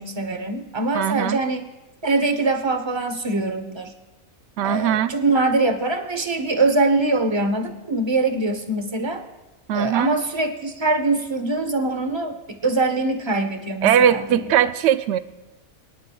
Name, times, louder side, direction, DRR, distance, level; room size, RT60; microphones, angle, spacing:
voice 1, 0.0-1.7 2.0-3.9 4.6-9.2 9.7-14.4, right 2 dB, 25° right, 6 dB, 0.8 m, -23 dB
voice 2, 0.9-1.4 4.6-5.1 9.7-10.2 13.8-15.2, right 9 dB, 65° right, 12 dB, 0.8 m, -20 dB
22.0 x 11.0 x 2.3 m, 1.1 s
omnidirectional pair, 1.5 m